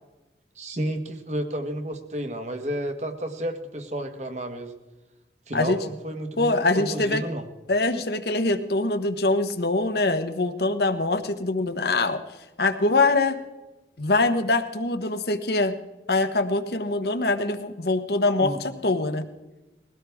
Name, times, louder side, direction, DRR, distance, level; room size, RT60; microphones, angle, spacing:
voice 1, 0.6-4.7 5.5-7.4 18.4-18.6, right 1 dB, 40° right, 6 dB, 1.5 m, -31 dB
voice 2, 6.4-7.2 7.7-12.2 12.6-13.4 14.0-15.7 16.1-19.2, left 2 dB, 60° left, 9 dB, 1.1 m, -23 dB
21.5 x 16.5 x 3.6 m, 1.1 s
head